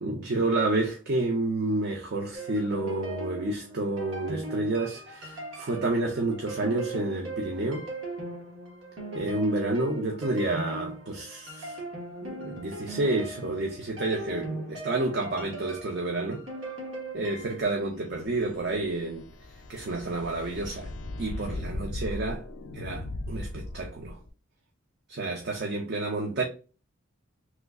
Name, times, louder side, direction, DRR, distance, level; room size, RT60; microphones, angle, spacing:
voice 1, 0.0-7.9 9.1-11.8 12.2-16.4 17.1-19.3 19.7-20.9 21.2-22.4 22.7-24.2 25.1-26.4, right 2 dB, 50° right, 0.5 m, -29 dB
sound 1, 2.3-17.6, right 1 dB, 75° right, 1.2 m, -39 dB
sound 2, 17.9-24.3, left 2 dB, 65° left, 0.5 m, -38 dB
3.1 x 2.3 x 3.5 m
head